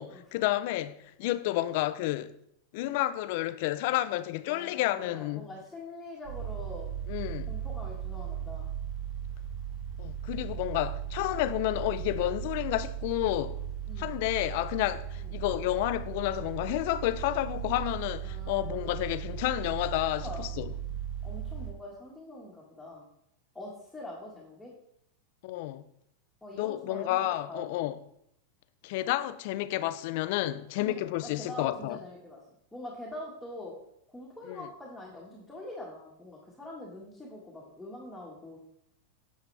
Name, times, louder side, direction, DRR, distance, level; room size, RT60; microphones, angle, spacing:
voice 1, 0.0-2.3 2.7-5.5 7.1-7.5 10.0-13.6 14.0-20.7 25.4-25.8 26.6-28.0 28.8-32.0 34.5-34.7, left 15 dB, 60° left, 0.5 m, -30 dB
voice 2, 4.5-6.9 7.5-8.7 13.9-14.2 15.2-15.3 18.2-19.1 20.1-20.5 21.2-23.1 23.5-24.7 26.4-27.9 30.8-32.4 32.7-33.8 34.1-38.6, left 1 dB, 5° left, 1.6 m, -44 dB
sound 1, 6.2-21.7, right 9 dB, 40° right, 1.8 m, -37 dB
8.2 x 7.4 x 3.4 m
supercardioid pair, 125°, 0 cm